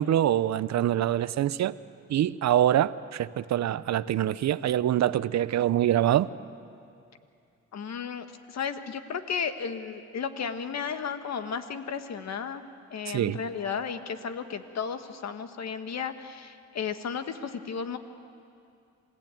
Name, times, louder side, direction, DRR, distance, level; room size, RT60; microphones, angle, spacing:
voice 1, 0.0-1.7 2.1-6.3 13.1-13.4, right 11 dB, 65° right, 0.7 m, -25 dB
voice 2, 7.7-12.6 12.9-18.0, left 6 dB, 60° left, 1.6 m, -34 dB
27.5 x 16.0 x 9.2 m
supercardioid pair, 65°, 30 cm